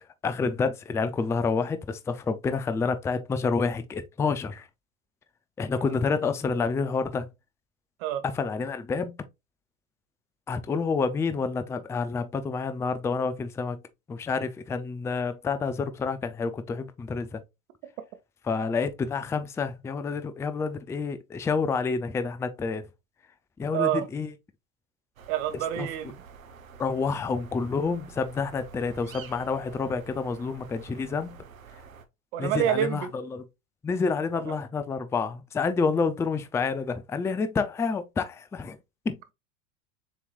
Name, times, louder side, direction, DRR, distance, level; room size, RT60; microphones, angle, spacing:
voice 1, 0.2-4.7 5.6-7.3 8.2-9.2 10.5-13.8 14.1-17.4 18.5-22.8 23.6-24.3 25.8-25.9 26.8-31.4 32.4-33.4 33.8-38.8 39.1-39.2, left 4 dB, 5° left, 0.4 m, -28 dB
voice 2, 23.7-24.0 25.3-26.2 32.3-33.1 34.5-34.6, right 11 dB, 60° right, 1.3 m, -27 dB
sound 1, 25.2-32.0, right 5 dB, 90° right, 1.0 m, -48 dB
7.1 x 3.0 x 2.4 m
hypercardioid pair, 95°, 39 cm